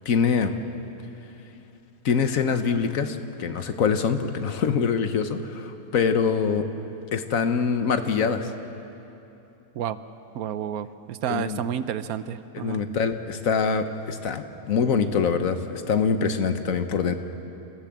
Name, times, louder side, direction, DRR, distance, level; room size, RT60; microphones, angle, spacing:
voice 1, 0.0-0.6 2.0-6.6 7.1-8.5 11.3-11.6 12.5-17.1, left 6 dB, 60° left, 8 dB, 1.3 m, -24 dB
voice 2, 10.3-12.8, right 9 dB, 75° right, 13 dB, 1.1 m, -30 dB
27.0 x 15.5 x 7.4 m, 3.0 s
omnidirectional pair, 1.6 m